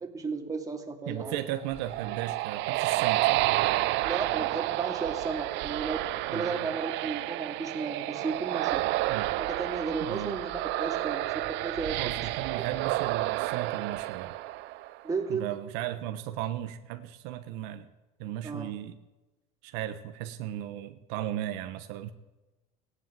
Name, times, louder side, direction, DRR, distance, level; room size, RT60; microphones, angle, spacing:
voice 1, 0.0-1.4 4.0-6.0 6.3-8.9 9.4-11.3 11.6-12.0 12.5-12.6 15.0-15.5 18.4-18.7, right 4 dB, 15° right, 2 dB, 2.5 m, -34 dB
voice 2, 1.1-3.4 6.3-6.7 9.1-9.3 10.0-10.4 12.0-14.4 15.3-17.9 18.2-19.0 19.6-22.1, right 12 dB, 85° right, 8 dB, 1.0 m, -36 dB
sound 1, 1.5-15.1, right 17 dB, 65° right, 0.6 m, -30 dB
17.0 x 9.9 x 7.6 m, 1.1 s
cardioid pair, 120°, 20 cm